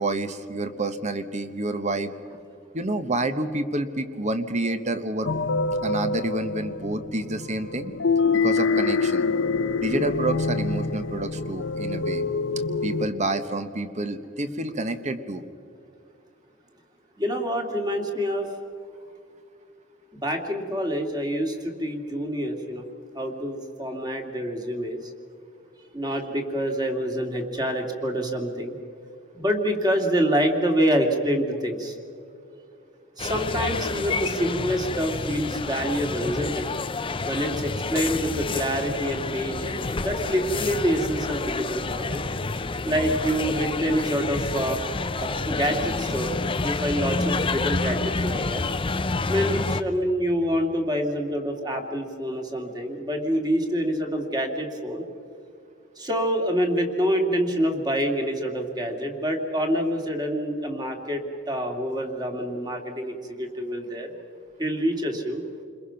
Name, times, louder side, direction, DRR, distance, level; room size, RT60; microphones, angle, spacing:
voice 1, 0.0-2.1 2.7-5.4 5.8-7.9 8.3-9.2 9.8-12.2 12.8-15.4, right 2 dB, 35° right, 10 dB, 1.2 m, -28 dB
sound 1, 5.2-13.1, left 4 dB, 65° left, 0.8 m, -26 dB
voice 2, 17.2-18.5 20.2-22.9 23.1-25.0 25.9-28.8 29.3-31.9 33.2-36.7 37.2-42.2 42.8-44.8 45.2-46.3 46.6-48.7 49.3-55.0 56.0-61.2 61.5-64.1 64.6-65.4, equal, 20° right, 3 dB, 2.4 m, -26 dB
sound 2, 33.2-49.8, left 3 dB, 25° left, 0.6 m, -29 dB
29.0 x 21.5 x 5.8 m, 2.5 s
head